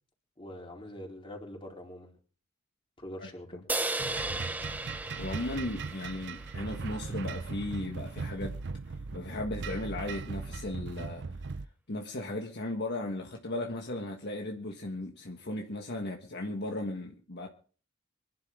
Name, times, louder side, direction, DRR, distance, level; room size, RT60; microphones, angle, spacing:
voice 1, 0.4-2.1 3.0-3.6, left 1 dB, 25° left, 4.3 m, -44 dB
sound 1, 3.7-7.2, right 2 dB, 10° right, 0.8 m, -36 dB
sound 2, 4.0-11.7, right 4 dB, 60° right, 0.6 m, -38 dB
voice 2, 5.2-8.6 8.9-11.4 11.9-17.5, left 2 dB, 55° left, 1.5 m, -36 dB
24.5 x 11.5 x 3.7 m
head